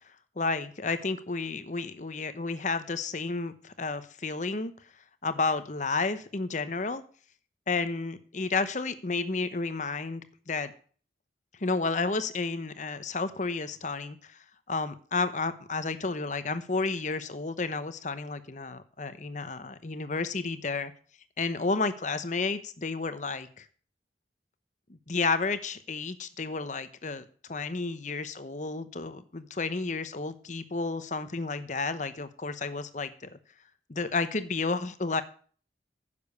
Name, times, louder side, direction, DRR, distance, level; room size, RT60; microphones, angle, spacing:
voice 1, 0.4-4.7 5.2-7.0 7.7-10.7 11.6-14.4 14.7-20.9 21.4-23.6 24.9-33.3 33.9-35.2, left 3 dB, 45° left, 12 dB, 0.9 m, -31 dB
10.0 x 6.9 x 6.8 m, 0.44 s
head